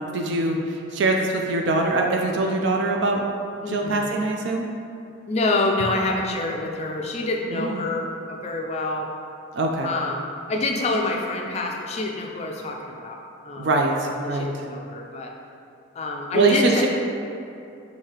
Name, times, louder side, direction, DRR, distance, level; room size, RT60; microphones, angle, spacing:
voice 1, 0.0-3.2 3.7-4.7 7.5-7.9 9.5-9.9 13.6-14.5 16.3-16.9, right 2 dB, 60° right, 1 dB, 0.4 m, -23 dB
voice 2, 3.6-4.1 5.3-9.1 9.8-10.2 10.5-13.2 13.4-13.7 14.2-15.3 16.0-16.9, left 2 dB, 35° left, 1 dB, 0.3 m, -27 dB
6.4 x 2.8 x 2.9 m, 2.5 s
head